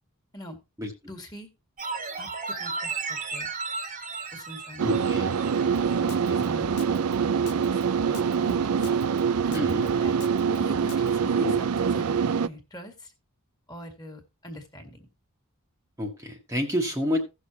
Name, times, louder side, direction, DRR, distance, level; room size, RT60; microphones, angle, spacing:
voice 1, 1.1-1.5 2.2-3.5 4.3-5.1 5.8-9.0 9.4-10.2 10.5-13.1 13.7-15.1, equal, 20° left, 5 dB, 1.9 m, -42 dB
sound 1, 1.8-6.0 6.3-6.4, right 4 dB, 35° right, 1.4 m, -34 dB
voice 2, 4.8-5.4 6.0-6.4 9.5-9.9 11.4-11.6 16.0-17.2, left 1 dB, 10° right, 0 dB, 1.3 m, -29 dB
sound 2, 4.8-12.5, right 6 dB, 80° right, 0.5 m, -25 dB
Drum kit, 5.7-11.1, left 5 dB, 90° left, 1.1 m, -44 dB
16.5 x 6.4 x 2.8 m, 0.26 s
head